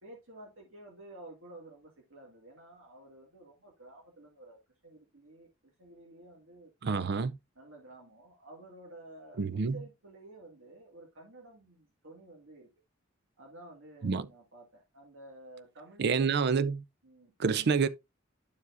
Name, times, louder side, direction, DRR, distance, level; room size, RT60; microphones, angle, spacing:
voice 1, 0.0-7.1 7.6-12.7 13.4-16.4 17.0-17.3, right 1 dB, 75° right, 2.0 m, -52 dB
voice 2, 6.8-7.3 9.4-9.8 14.0-14.3 16.0-16.8 17.4-17.9, right 5 dB, 55° right, 0.5 m, -27 dB
12.5 x 4.7 x 2.6 m
head